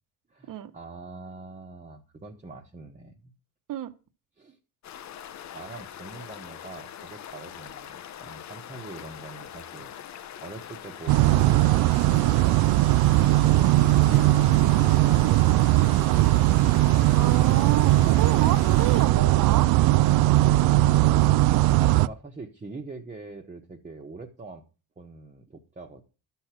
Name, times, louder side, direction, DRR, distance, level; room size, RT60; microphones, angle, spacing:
voice 1, 0.3-3.3 4.4-4.6 5.5-12.5 20.0-24.6 25.0-26.0, right 3 dB, 20° right, 1 dB, 1.4 m, -44 dB
sound 1, 4.8-19.1, left 10 dB, 50° left, 0.9 m, -42 dB
sound 2, 11.1-22.1, right 16 dB, 85° right, 0.5 m, -19 dB
voice 2, 17.2-19.7, right 12 dB, 65° right, 11 dB, 1.3 m, -29 dB
12.0 x 6.7 x 6.0 m, 0.33 s
cardioid pair, 120°, 35 cm